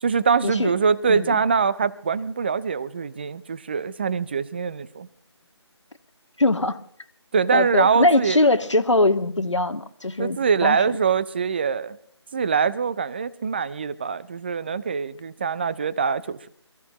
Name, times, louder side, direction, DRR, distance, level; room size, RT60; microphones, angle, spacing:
voice 1, 0.0-5.1 7.3-8.4 10.2-12.0 12.3-16.5, right 6 dB, 20° right, 18 dB, 0.6 m, -23 dB
voice 2, 1.1-1.4 6.4-6.8 7.5-11.0, left 2 dB, 85° left, 8 dB, 1.8 m, -22 dB
27.0 x 15.5 x 3.0 m, 0.65 s
figure-of-eight pair, 160°, 15 cm